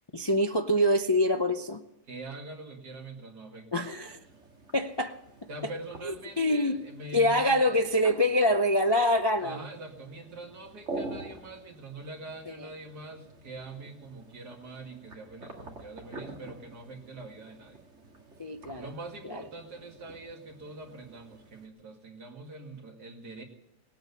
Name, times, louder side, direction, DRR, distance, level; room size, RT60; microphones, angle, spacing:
voice 1, 0.1-1.8 3.7-4.2 4.7-5.2 6.0-6.8 7.1-9.6 18.4-18.9 19.3-19.4, left 1 dB, 35° left, 6 dB, 0.4 m, -25 dB
voice 2, 2.1-4.1 5.5-7.8 9.4-17.8 18.8-23.4, right 2 dB, 75° right, 2 dB, 2.8 m, -44 dB
sound 1, 4.0-21.7, right 2 dB, 45° right, 2.3 m, -47 dB
19.0 x 8.8 x 8.2 m, 0.88 s
omnidirectional pair, 1.7 m